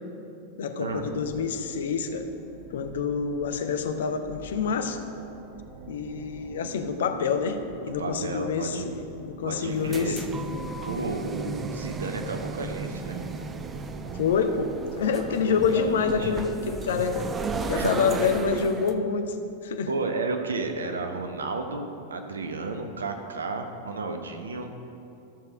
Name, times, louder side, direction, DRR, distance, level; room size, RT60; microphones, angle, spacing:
voice 1, 0.6-2.3 2.7-5.0 5.9-10.5 14.1-17.3 17.7-19.4 19.6-19.9, left 6 dB, 60° left, 8 dB, 0.7 m, -27 dB
sound 1, 0.9-17.0, right 3 dB, 45° right, 1.1 m, -44 dB
voice 2, 7.8-8.9 9.4-10.2 10.9-13.2 15.0-16.3 17.7-18.5 19.9-24.7, right 3 dB, 70° right, 5 dB, 1.0 m, -33 dB
sound 2, 9.6-18.9, right 4 dB, 20° right, 0.5 m, -35 dB
13.5 x 6.6 x 5.0 m, 2.7 s
figure-of-eight pair, 90°, 0 cm